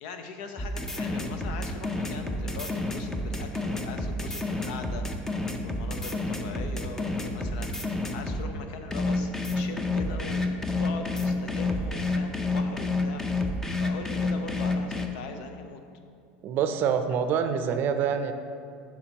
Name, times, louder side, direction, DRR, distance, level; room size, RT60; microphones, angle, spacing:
voice 1, 0.0-13.5 13.8-15.8, left 5 dB, 75° left, 6 dB, 0.6 m, -41 dB
sound 1, 0.6-8.5 8.9-15.1, left 2 dB, 10° left, 0.5 m, -29 dB
voice 2, 16.4-18.3, right 7 dB, 50° right, 8 dB, 0.5 m, -26 dB
8.3 x 5.7 x 2.9 m, 2.4 s
supercardioid pair, 120°, 4 cm